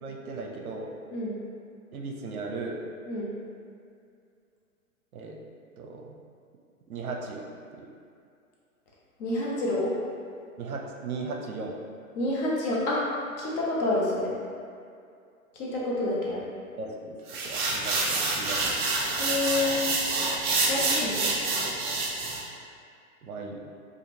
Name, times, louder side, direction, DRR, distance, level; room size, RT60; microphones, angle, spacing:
voice 1, 0.0-0.9 1.9-2.8 5.1-5.4 5.8-6.1 6.9-7.9 10.6-11.8 16.8-17.2 17.4-19.0 23.2-23.6, right 3 dB, 75° right, 1 dB, 0.7 m, -37 dB
voice 2, 9.2-9.9 12.2-13.0 13.4-14.3 15.5-16.4 19.2-19.8 20.7-21.3, left 2 dB, 30° left, -5 dB, 0.8 m, -28 dB
sound 1, 17.3-22.4, right 3 dB, 35° right, 0.5 m, -27 dB
5.0 x 2.4 x 2.8 m, 2.4 s
hypercardioid pair, 120°, 44 cm